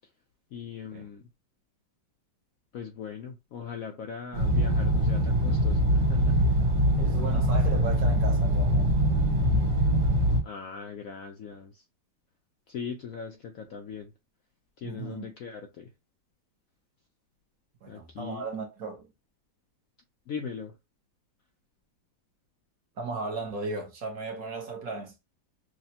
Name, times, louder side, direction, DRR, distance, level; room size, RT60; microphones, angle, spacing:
voice 1, 0.5-1.2 2.7-6.3 10.4-11.7 12.7-14.1 14.8-15.9 17.9-18.4 20.3-20.7, left 6 dB, 65° left, 0.8 m, -39 dB
sound 1, 4.3-10.4, equal, 80° right, 1.9 m, -23 dB
voice 2, 7.0-8.9 14.8-15.3 17.8-19.1 23.0-25.1, right 3 dB, 55° right, 1.3 m, -36 dB
6.2 x 2.2 x 2.8 m
omnidirectional pair, 2.0 m